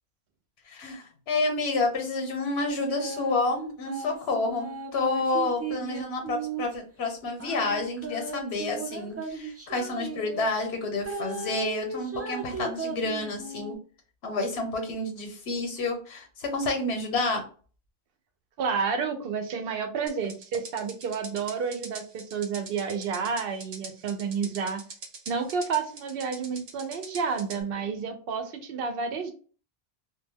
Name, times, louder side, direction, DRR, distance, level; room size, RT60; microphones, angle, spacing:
voice 1, 0.7-13.8 14.2-17.4, left 2 dB, 85° left, 4 dB, 1.1 m, -29 dB
sound 1, 2.7-3.3 3.9-6.8 7.4-10.5 11.0-13.8, right 3 dB, 25° right, 0.3 m, -36 dB
voice 2, 18.6-24.8 25.3-29.3, right 5 dB, 70° right, 7 dB, 0.8 m, -30 dB
sound 2, 20.1-27.6, right 4 dB, 90° right, 0.9 m, -43 dB
2.2 x 2.2 x 3.3 m, 0.39 s
omnidirectional pair, 1.0 m